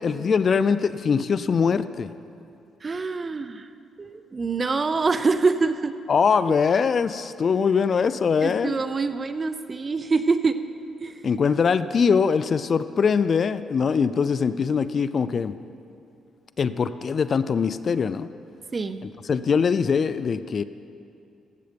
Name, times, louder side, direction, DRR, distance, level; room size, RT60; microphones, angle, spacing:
voice 1, 0.0-2.1 6.1-8.8 11.2-15.6 16.6-18.3 19.2-20.6, left 6 dB, 45° left, 14 dB, 0.4 m, -22 dB
voice 2, 2.8-3.7 4.0-5.9 8.4-10.6 11.0-11.2 18.7-19.0, right 4 dB, 30° right, 11 dB, 0.6 m, -25 dB
15.0 x 7.7 x 5.1 m, 2.5 s
cardioid pair, 90°, 0 cm